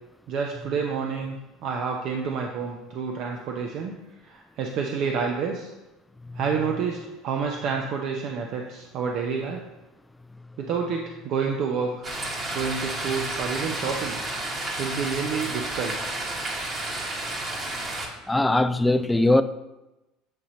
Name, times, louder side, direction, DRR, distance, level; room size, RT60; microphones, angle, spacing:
voice 1, 0.3-3.9 4.2-5.7 6.3-9.6 10.6-12.1 12.5-14.2 14.8-15.9, right 5 dB, 55° right, 0.6 m, -29 dB
sound 1, 12.0-18.1, right 2 dB, 35° right, 1.2 m, -31 dB
voice 2, 18.3-19.4, left 2 dB, 10° left, 0.3 m, -20 dB
7.7 x 2.8 x 5.0 m
supercardioid pair, 100°, 0 cm